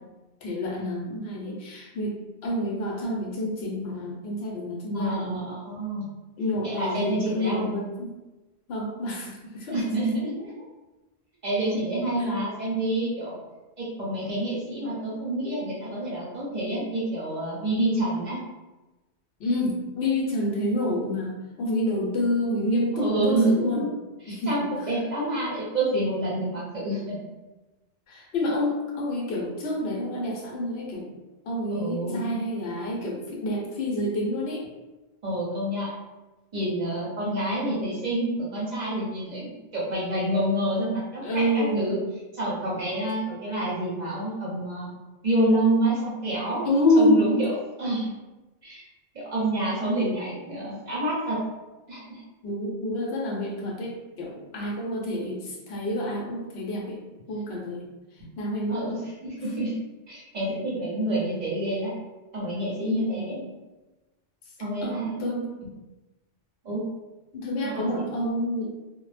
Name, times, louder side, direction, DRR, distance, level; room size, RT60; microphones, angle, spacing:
voice 1, 0.4-5.4 6.4-8.1 8.7-9.8 12.2-12.3 17.8-18.2 19.4-23.8 24.3-24.5 28.1-31.1 31.5-34.6 41.2-42.0 46.6-47.3 52.4-57.0 57.3-57.9 58.4-59.0 62.8-63.2 64.8-65.5 67.3-68.8, left 1 dB, 70° left, -2 dB, 0.8 m, -28 dB
voice 2, 4.9-6.0 6.6-7.7 9.7-10.5 11.4-13.4 13.8-18.4 22.9-23.9 24.2-27.1 31.7-32.3 35.2-35.9 36.5-42.0 42.3-44.9 45.2-46.6 47.0-48.1 48.6-48.8 49.1-51.4 51.9-52.2 58.7-59.8 60.1-61.9 62.3-63.4 64.6-65.2 66.6-66.8 67.6-68.2, right 1 dB, 45° right, -6 dB, 0.7 m, -28 dB
2.0 x 2.0 x 3.1 m, 1.1 s
omnidirectional pair, 1.1 m